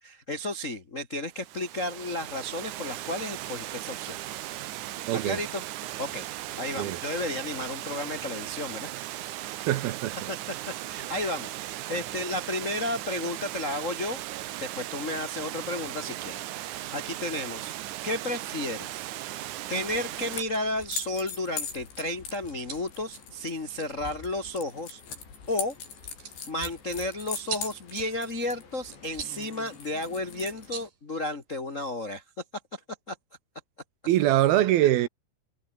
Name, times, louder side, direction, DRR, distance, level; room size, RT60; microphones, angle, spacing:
voice 1, 0.0-4.2 5.1-5.6 6.0-6.3 6.6-9.2 9.6-9.7 10.3-14.2 14.6-17.7 18.0-19.0 19.7-25.0 25.5-25.7 26.5-32.2 32.7-32.8 33.1-33.2 34.8-34.9, left 1 dB, 60° left, 0.8 m, -33 dB
Water, 1.3-20.4, right 14 dB, 90° right, 1.7 m, -37 dB
voice 2, 5.1-5.4 6.8-7.0 9.7-10.3 34.1-35.1, right 13 dB, 75° right, 2.7 m, -23 dB
sound 1, 19.7-30.9, left 6 dB, 80° left, 8.5 m, -41 dB
sound 2, 22.3-31.8, right 7 dB, 55° right, 5.1 m, -45 dB
omnidirectional pair, 4.9 m